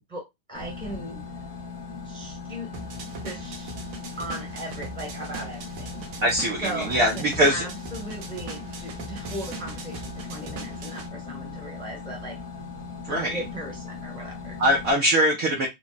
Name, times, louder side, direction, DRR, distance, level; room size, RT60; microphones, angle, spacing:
voice 1, 0.1-1.2 2.0-2.7 3.2-3.7 4.2-6.2 6.6-12.4 13.1-14.6, right 1 dB, 5° left, 0.9 m, -37 dB
sound 1, 0.5-14.9, left 4 dB, 30° left, 0.5 m, -39 dB
sound 2, 2.7-11.1, right 4 dB, 90° right, 1.6 m, -40 dB
voice 2, 6.2-7.6 13.0-13.4 14.6-15.7, equal, 65° right, 0.9 m, -22 dB
3.6 x 2.2 x 4.0 m
omnidirectional pair, 2.2 m